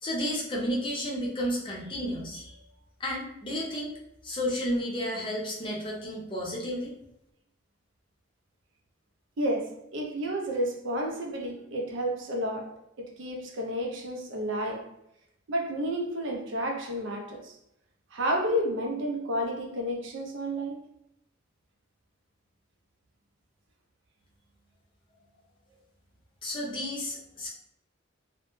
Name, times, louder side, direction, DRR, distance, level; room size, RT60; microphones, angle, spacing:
voice 1, 0.0-2.6 3.0-3.9 4.2-6.9 26.4-27.5, equal, 25° left, 0.6 m, -32 dB
voice 2, 9.4-14.9 15.5-17.6 18.1-20.9, equal, 65° right, 0.5 m, -31 dB
2.1 x 2.0 x 3.0 m
head